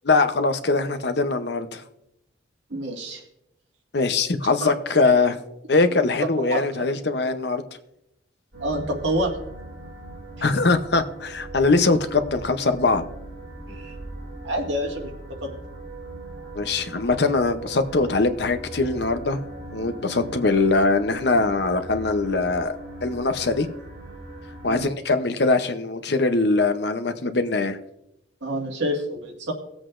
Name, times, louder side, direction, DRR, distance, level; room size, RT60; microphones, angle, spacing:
voice 1, 0.0-1.8 3.9-5.4 5.7-7.6 10.4-13.0 16.5-19.4 19.7-22.7 23.0-23.7 24.6-27.8, left 3 dB, 60° left, 9 dB, 0.7 m, -22 dB
voice 2, 2.7-3.2 4.4-4.7 6.4-6.7 8.6-9.3 13.7-13.9 14.4-15.1 15.4-15.5 20.5-20.7 24.7-24.9 28.4-29.5, right 1 dB, 70° right, 0 dB, 2.0 m, -28 dB
sound 1, 8.5-24.9, right 2 dB, 55° right, 3.0 m, -39 dB
18.5 x 7.9 x 2.5 m, 0.83 s
head